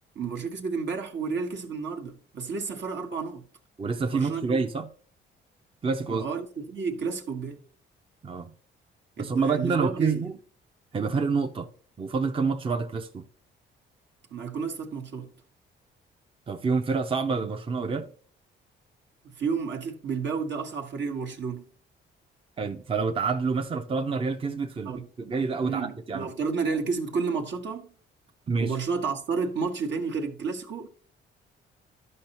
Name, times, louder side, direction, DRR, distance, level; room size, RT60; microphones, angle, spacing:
voice 1, 0.1-3.5 4.1-4.6 6.1-7.6 9.2-10.3 14.3-15.3 19.3-21.6 24.8-25.1 25.6-27.9 28.6-30.9, right 5 dB, 65° right, 1.3 m, -31 dB
voice 2, 3.8-4.9 5.8-6.3 8.2-8.5 9.2-10.4 10.9-11.7 12.0-13.2 16.5-18.1 22.6-24.9 25.2-26.3 28.5-28.8, right 4 dB, 25° right, 0.6 m, -27 dB
12.0 x 5.4 x 2.9 m
cardioid pair, 85°, 20 cm